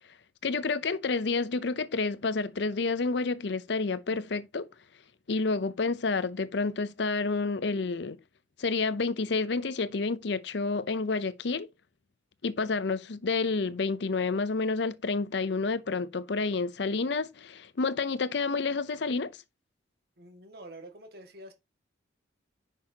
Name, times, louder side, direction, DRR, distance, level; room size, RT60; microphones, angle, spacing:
voice 1, 0.4-4.7 5.3-8.2 8.6-11.7 12.4-19.3, left 4 dB, 65° left, 0.6 m, -29 dB
voice 2, 20.2-21.5, right 1 dB, 55° right, 1.9 m, -47 dB
9.6 x 6.3 x 2.9 m
head